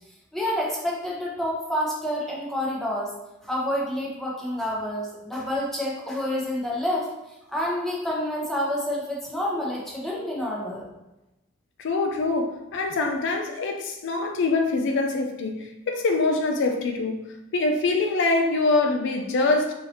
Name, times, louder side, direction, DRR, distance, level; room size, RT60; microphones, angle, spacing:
voice 1, 0.3-3.1 3.4-7.1 7.5-10.9, left 1 dB, ahead, -4 dB, 0.8 m, -28 dB
voice 2, 11.8-17.3 17.5-19.7, left 3 dB, 60° left, 3 dB, 0.4 m, -24 dB
4.7 x 2.8 x 2.9 m, 0.97 s
head